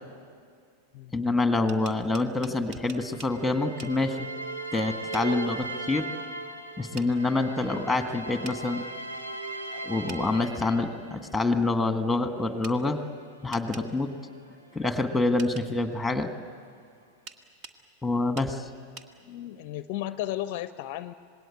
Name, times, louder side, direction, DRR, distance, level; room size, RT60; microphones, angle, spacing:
voice 1, 1.1-4.3 4.7-6.0 6.8-8.8 9.7-13.0 13.4-14.1 14.7-16.3 18.0-18.7, left 2 dB, 5° left, 8 dB, 1.7 m, -26 dB
sound 1, 1.5-3.3 3.8-3.9 5.1-5.3 7.0-7.1 8.4-8.6 10.1-10.2 12.6-12.8 13.5-13.9 15.4-15.7 17.3-17.8 18.4-18.5 19.0-19.1, right 4 dB, 40° right, 1.5 m, -44 dB
sound 2, 2.8-11.3 12.1-15.4, right 3 dB, 75° right, 3.1 m, -39 dB
voice 2, 19.2-21.1, left 13 dB, 45° left, 15 dB, 0.6 m, -34 dB
26.5 x 20.5 x 8.6 m, 2.2 s
figure-of-eight pair, 90°, 0 cm